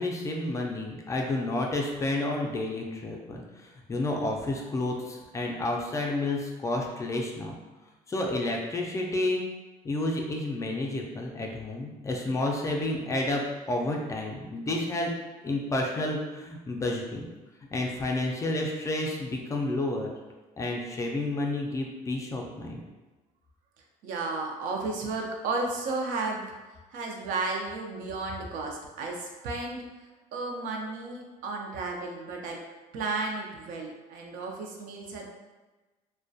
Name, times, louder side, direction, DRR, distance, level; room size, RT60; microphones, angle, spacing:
voice 1, 0.0-7.5 8.1-9.4 9.8-15.1 15.4-17.3 17.7-20.1 20.6-22.8, left 2 dB, 20° left, 0 dB, 0.3 m, -30 dB
voice 2, 24.0-26.5 26.9-29.8 30.3-32.6 32.9-35.3, right 3 dB, 70° right, 1 dB, 0.5 m, -33 dB
2.2 x 2.1 x 2.6 m, 1.2 s
cardioid pair, 115°, 14 cm